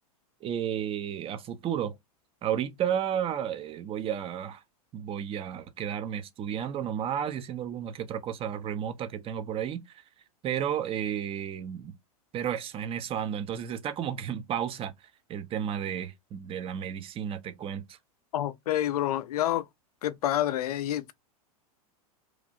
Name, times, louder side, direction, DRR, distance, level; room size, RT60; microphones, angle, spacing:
voice 1, 0.4-1.9 2.4-4.6 4.9-10.0 10.4-11.9 12.3-14.9 15.3-18.0, right 9 dB, 30° right, 0.6 m, -32 dB
voice 2, 18.3-19.7 20.0-21.1, left 12 dB, 80° left, 0.5 m, -28 dB
3.1 x 2.5 x 2.4 m
hypercardioid pair, 115°, 19 cm